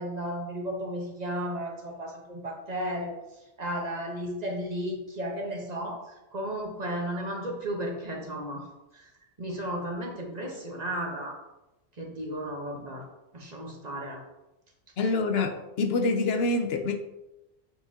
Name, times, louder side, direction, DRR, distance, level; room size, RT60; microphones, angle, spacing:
voice 1, 0.0-3.2 3.6-6.1 6.3-8.7 8.9-9.0 9.4-11.3 12.0-13.0 13.3-14.2, equal, 40° right, 0 dB, 1.1 m, -34 dB
voice 2, 15.0-17.0, left 3 dB, 70° left, 6 dB, 0.8 m, -26 dB
7.6 x 4.9 x 2.8 m, 0.96 s
omnidirectional pair, 1.1 m